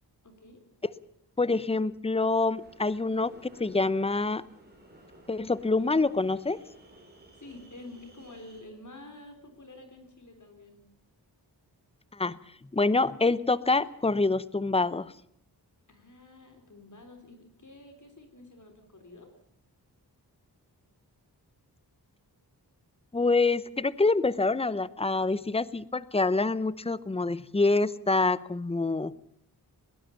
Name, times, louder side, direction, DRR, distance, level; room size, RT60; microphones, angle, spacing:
voice 1, 0.2-0.6 7.3-10.9 15.9-19.3, left 2 dB, 45° left, 5 dB, 3.6 m, -49 dB
voice 2, 1.4-3.3 3.6-4.4 5.3-6.6 12.1-12.4 12.7-15.1 23.1-29.1, left 3 dB, 15° left, 17 dB, 0.8 m, -26 dB
sound 1, 2.5-8.6, right 1 dB, 25° right, 5.8 m, -55 dB
21.0 x 18.0 x 7.1 m, 0.69 s
wide cardioid pair, 80°, 40 cm